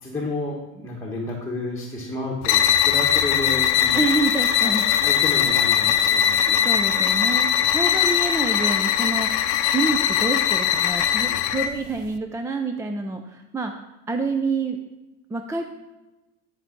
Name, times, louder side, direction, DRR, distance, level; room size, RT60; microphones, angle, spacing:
voice 1, 0.0-4.0 4.6-4.8 5.0-6.6 7.6-7.7 11.1-11.5, left 2 dB, 10° left, -3 dB, 1.3 m, -31 dB
sound 1, 2.4-11.8, left 10 dB, 70° left, 0.7 m, -20 dB
voice 2, 3.9-4.9 6.7-9.3 9.7-13.7 14.1-14.8 15.3-15.6, right 3 dB, 10° right, 5 dB, 0.4 m, -27 dB
11.0 x 4.6 x 5.9 m, 1.0 s
cardioid pair, 150°, 32 cm